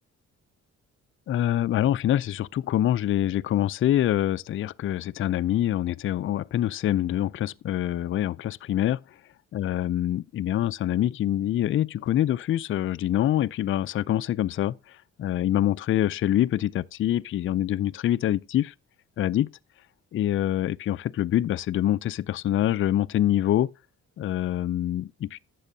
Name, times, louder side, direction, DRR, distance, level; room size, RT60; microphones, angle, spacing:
voice 1, 1.3-9.0 9.5-18.7 19.2-19.5 20.1-23.7 24.2-25.4, left 12 dB, 45° left, 0.4 m, -25 dB
12.0 x 8.3 x 2.7 m
cardioid pair, 90°, 30 cm